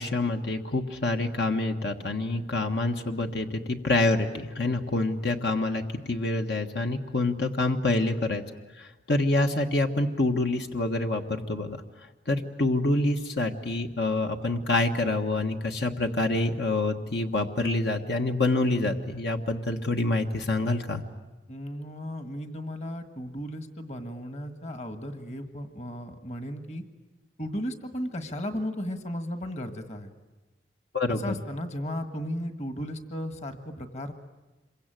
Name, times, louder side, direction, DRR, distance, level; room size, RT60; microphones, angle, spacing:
voice 1, 0.0-8.4 8.8-11.8 12.3-21.0 30.9-31.3, left 2 dB, 70° left, 4 dB, 1.5 m, -27 dB
voice 2, 21.5-26.8 27.4-30.1 31.1-34.1, equal, 40° left, 7 dB, 1.7 m, -35 dB
27.0 x 24.0 x 9.2 m, 1.1 s
head